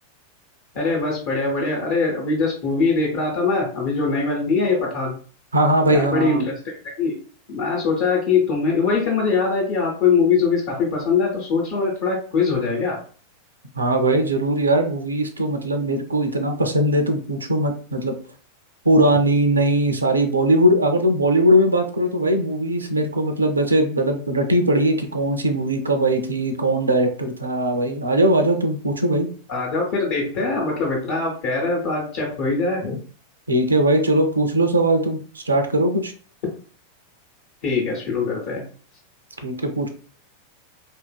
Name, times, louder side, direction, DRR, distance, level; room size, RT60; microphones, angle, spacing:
voice 1, 0.7-5.2 5.8-6.5 6.8-7.2 7.5-13.0 29.5-33.0 37.6-38.6, left 4 dB, 45° left, -3 dB, 0.8 m, -22 dB
voice 2, 5.5-6.4 13.8-18.1 18.8-29.3 33.5-36.1 39.4-39.9, right 1 dB, 75° right, 5 dB, 0.4 m, -20 dB
2.7 x 2.4 x 2.2 m, 0.42 s
figure-of-eight pair, 90°, 0 cm